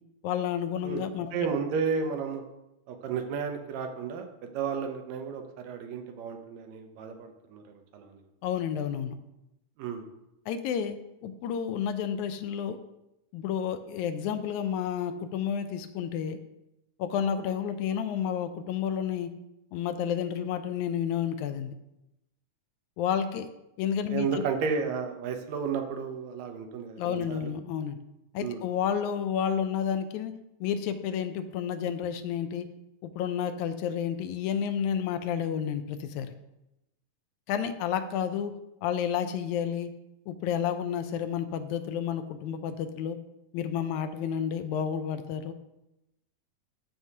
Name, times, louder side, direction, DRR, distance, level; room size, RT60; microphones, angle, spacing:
voice 1, 0.2-1.3 8.4-9.2 10.5-12.8 13.3-16.4 17.0-19.3 19.7-21.8 23.0-23.5 23.8-24.4 27.0-28.0 28.3-30.3 30.6-32.7 33.0-36.3 37.5-38.5 38.8-39.9 40.3-43.2 43.5-45.5, left 8 dB, 80° left, 9 dB, 1.9 m, -30 dB
voice 2, 1.3-2.4 2.9-7.6 7.9-8.1 9.8-10.1 24.1-27.5 28.4-28.6, right 6 dB, 75° right, 5 dB, 1.8 m, -32 dB
13.0 x 4.7 x 2.8 m, 0.90 s
omnidirectional pair, 3.6 m